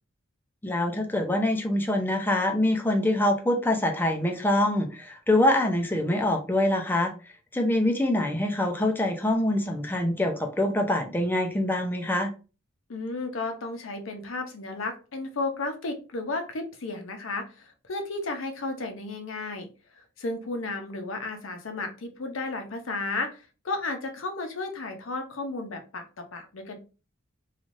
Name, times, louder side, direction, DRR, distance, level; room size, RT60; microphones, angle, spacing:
voice 1, 0.6-12.3, left 1 dB, 10° left, 3 dB, 0.4 m, -25 dB
voice 2, 12.9-19.7 20.2-26.8, left 3 dB, 75° left, 5 dB, 0.7 m, -33 dB
3.2 x 2.4 x 2.5 m, 0.33 s
head